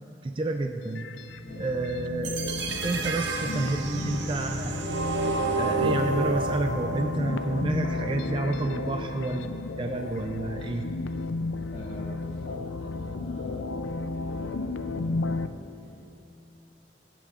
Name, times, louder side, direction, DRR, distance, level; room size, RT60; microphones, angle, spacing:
voice 1, 0.2-1.1 1.6-2.3 2.8-4.8 5.6-10.9, right 2 dB, 25° right, 5 dB, 0.3 m, -30 dB
sound 1, 0.8-15.5, left 3 dB, 90° left, 0.4 m, -33 dB
voice 2, 2.2-2.8 7.2-7.5 11.7-16.1, equal, 35° left, -5 dB, 2.1 m, -46 dB
sound 2, 2.2-8.3, right 3 dB, 75° right, 0.7 m, -31 dB
Bowed string instrument, 2.6-7.9, left 1 dB, 60° left, 1.8 m, -40 dB
21.5 x 8.3 x 2.4 m, 2.8 s
head